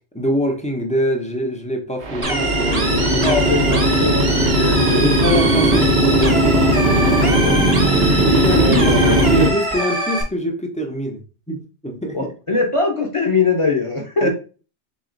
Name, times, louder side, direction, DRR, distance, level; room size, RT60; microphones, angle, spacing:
voice 1, 0.1-3.5 4.4-4.5 4.9-6.5 8.2-8.9 9.3-11.2 11.5-12.3 14.2-14.3, equal, 5° left, 2 dB, 0.7 m, -23 dB
sound 1, 2.0-9.5, right 1 dB, 60° right, 1.3 m, -17 dB
sound 2, 2.2-10.2, right 1 dB, 30° right, 1.1 m, -24 dB
voice 2, 2.8-5.1 7.0-7.6 8.0-8.2 8.6-9.2 12.1-14.3, left 3 dB, 30° left, 0 dB, 1.0 m, -22 dB
4.1 x 3.0 x 3.9 m, 0.35 s
omnidirectional pair, 1.2 m